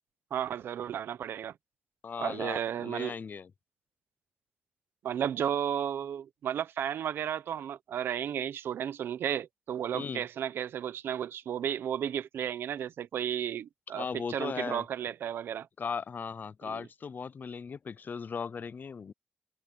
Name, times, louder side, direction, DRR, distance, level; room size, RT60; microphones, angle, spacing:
voice 1, 0.3-1.5 2.2-3.1 5.0-15.7 16.6-16.8, right 9 dB, 85° right, 0.9 m, -33 dB
voice 2, 2.0-3.5 9.9-10.2 14.0-14.8 15.8-19.1, left 6 dB, 55° left, 0.6 m, -37 dB
cardioid pair, 60°, 4 cm